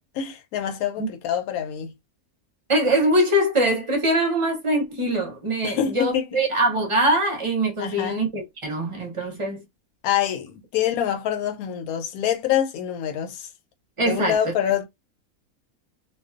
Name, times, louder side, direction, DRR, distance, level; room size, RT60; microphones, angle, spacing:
voice 1, 0.0-1.9 5.6-6.4 7.8-8.2 10.0-13.5 14.1-14.9, left 10 dB, 80° left, 1.0 m, -26 dB
voice 2, 2.7-9.6 14.0-14.5, right 1 dB, 35° right, 0.5 m, -23 dB
2.4 x 2.2 x 2.4 m
omnidirectional pair, 1.5 m